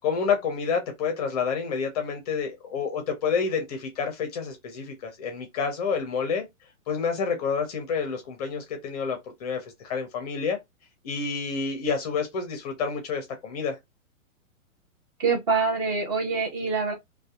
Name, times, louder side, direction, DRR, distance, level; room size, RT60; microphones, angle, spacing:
voice 1, 0.0-6.4 6.9-10.6 11.0-13.8, left 5 dB, 30° left, 0.5 m, -29 dB
voice 2, 15.2-16.9, right 4 dB, 25° right, 0.6 m, -25 dB
2.6 x 2.1 x 2.3 m
hypercardioid pair, 135°, 41 cm